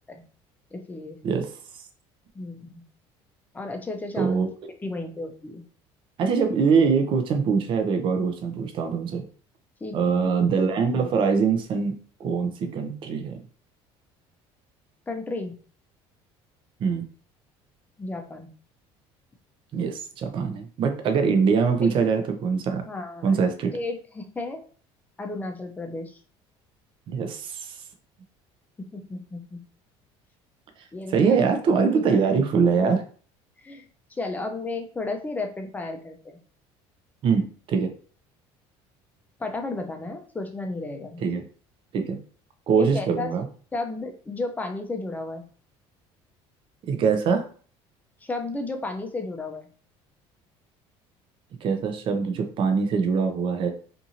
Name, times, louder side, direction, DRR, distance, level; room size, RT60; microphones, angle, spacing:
voice 1, 0.7-1.2 2.3-2.8 3.5-4.5 4.8-5.6 9.8-10.3 15.1-15.5 18.0-18.5 21.8-21.9 22.9-23.4 23.7-24.6 25.2-26.2 28.8-29.6 30.9-31.5 31.9-32.4 32.7-32.8 33.6-36.4 39.4-41.2 42.8-43.3 43.7-45.4 48.2-49.7, left 2 dB, 15° left, 5 dB, 0.5 m, -33 dB
voice 2, 4.2-4.5 6.2-9.2 9.9-13.4 16.8-17.0 19.7-22.8 23.2-23.7 27.1-27.8 31.1-33.0 37.2-37.9 41.2-41.4 41.9-42.2 42.7-43.5 46.9-47.5 51.6-53.7, right 5 dB, 45° right, 6 dB, 0.5 m, -23 dB
2.6 x 2.5 x 2.8 m, 0.43 s
cardioid pair, 125°, 12 cm